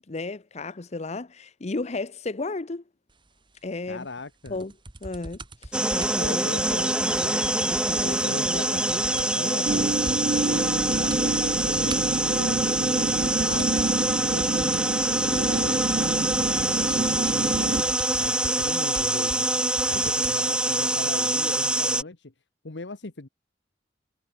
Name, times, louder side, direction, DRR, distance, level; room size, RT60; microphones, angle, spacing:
voice 1, 0.1-2.8 3.6-4.1 4.5-4.7 5.0-5.4 19.9-20.1, left 3 dB, 40° left, 0.8 m, -33 dB
voice 2, 3.9-4.6 5.9-13.8 14.2-14.9 15.3-19.5 19.9-22.3 22.6-23.3, left 3 dB, 80° left, 1.4 m, -38 dB
sound 1, 4.5-9.5 9.7-9.8 10.1-10.5 10.8-11.3 11.6-20.4 21.2-21.3, right 2 dB, 25° right, 1.7 m, -41 dB
sound 2, 5.7-22.0, right 1 dB, 5° right, 1.9 m, -25 dB
sound 3, 9.7-17.8, right 2 dB, 45° right, 0.6 m, -28 dB
head